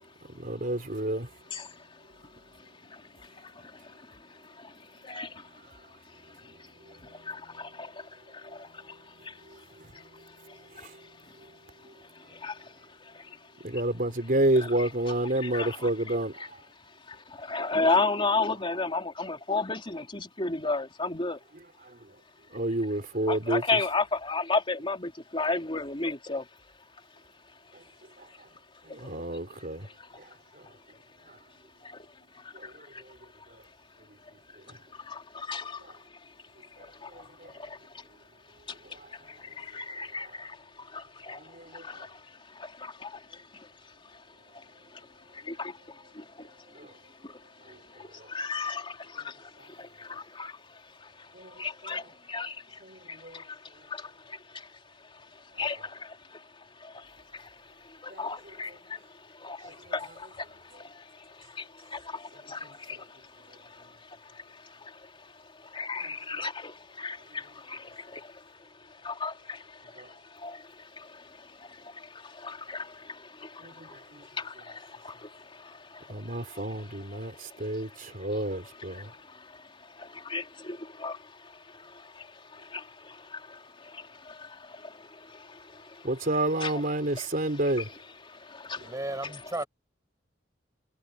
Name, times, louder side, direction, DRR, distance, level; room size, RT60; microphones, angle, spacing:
voice 1, 0.3-1.3 6.9-7.0 8.5-8.6 9.4-10.2 10.7-11.0 13.6-16.5 21.8-22.0 22.5-23.6 27.7-27.8 28.2-28.3 28.9-29.9 30.2-30.3 30.5-30.6 32.5-33.1 35.8-35.9 36.8-37.5 38.8-39.1 40.2-40.4 41.3-42.0 46.7-46.9 47.7-47.8 48.2-48.3 51.3-52.0 52.8-53.4 58.1-58.3 59.6-59.7 62.9-63.0 66.0-66.1 70.0-70.1 73.6-74.2 76.1-79.1 86.0-87.9, right 1 dB, 50° right, 3.9 m, -31 dB
voice 2, 1.5-2.0 2.6-5.5 6.1-6.7 7.0-9.6 9.9-11.1 11.4-11.5 12.1-12.7 13.0-13.4 13.7-13.8 14.8-14.9 15.4-16.5 17.1-21.4 23.3-26.4 29.0-29.4 29.8-30.2 31.8-32.0 32.3-33.0 34.9-36.0 36.8-38.0 38.7-43.7 44.1-44.2 44.5-44.6 44.9-46.9 47.2-54.7 55.1-86.1 86.6-86.7 87.1-87.3 88.3-88.9, left 3 dB, 30° left, 3.4 m, -36 dB
voice 3, 88.8-89.7, right 2 dB, 20° right, 5.8 m, -34 dB
head